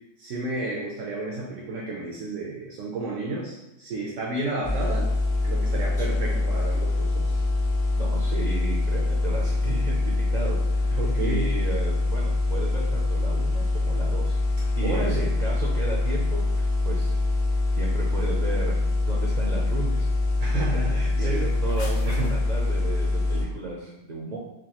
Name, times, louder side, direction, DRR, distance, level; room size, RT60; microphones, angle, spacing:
voice 1, 0.2-5.1 5.4-7.4 10.9-11.5 14.8-15.3 20.4-21.5 22.0-22.4, right 2 dB, 80° right, -3 dB, 1.0 m, -31 dB
sound 1, 4.6-23.4, left 2 dB, 75° left, 1.1 m, -24 dB
voice 2, 7.9-14.4 14.8-17.1 17.7-18.7 19.1-20.1 20.4-20.6 20.9-24.4, right 3 dB, 55° right, -4 dB, 0.5 m, -34 dB
sound 2, 21.4-22.9, left 2 dB, 55° left, 0.4 m, -43 dB
4.8 x 2.3 x 2.9 m, 0.92 s
omnidirectional pair, 1.3 m